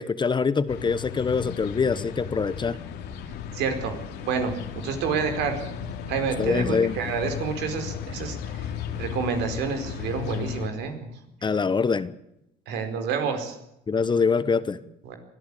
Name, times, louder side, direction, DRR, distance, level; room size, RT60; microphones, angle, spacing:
voice 1, 0.0-2.8 6.4-7.0 11.4-12.1 13.9-14.8, left 5 dB, 25° left, 15 dB, 1.1 m, -24 dB
sound 1, 0.7-10.7, left 8 dB, 85° left, 2.6 m, -35 dB
voice 2, 3.5-4.0 4.2-5.6 6.1-11.1 12.7-13.6 15.0-15.2, right 6 dB, 85° right, 6 dB, 4.6 m, -29 dB
23.5 x 14.0 x 8.5 m, 0.83 s
cardioid pair, 110°, 17 cm